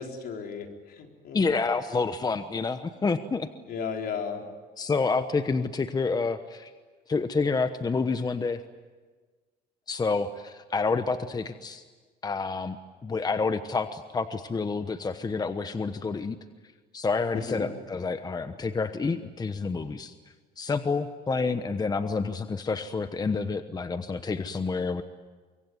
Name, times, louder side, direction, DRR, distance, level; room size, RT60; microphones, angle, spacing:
voice 1, 0.0-1.4 3.7-4.5 17.3-17.7, left 6 dB, 65° left, 3 dB, 4.1 m, -35 dB
voice 2, 1.3-3.5 4.8-6.7 7.1-8.6 9.9-11.8 12.2-12.8 13.0-16.4 16.9-20.1 20.6-25.0, left 4 dB, 25° left, 10 dB, 1.1 m, -28 dB
24.5 x 23.5 x 9.4 m, 1.4 s
cardioid pair, 110°, 17 cm